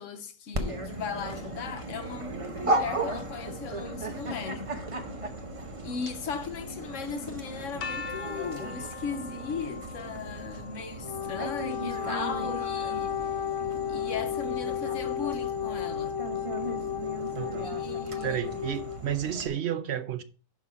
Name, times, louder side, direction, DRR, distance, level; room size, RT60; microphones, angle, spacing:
voice 1, 0.0-4.8 5.8-13.3 13.9-16.2 17.5-18.7, left 6 dB, 65° left, 1.1 m, -38 dB
Dog, 0.5-19.5, right 2 dB, 30° right, 0.7 m, -36 dB
sound 1, 7.8-13.7, left 5 dB, 90° left, 0.4 m, -43 dB
Wind instrument woodwind instrument, 10.9-19.0, left 9 dB, 30° left, 0.4 m, -33 dB
voice 2, 17.3-17.7 18.2-20.2, right 9 dB, 55° right, 0.9 m, -31 dB
6.2 x 5.5 x 4.9 m
omnidirectional pair, 1.5 m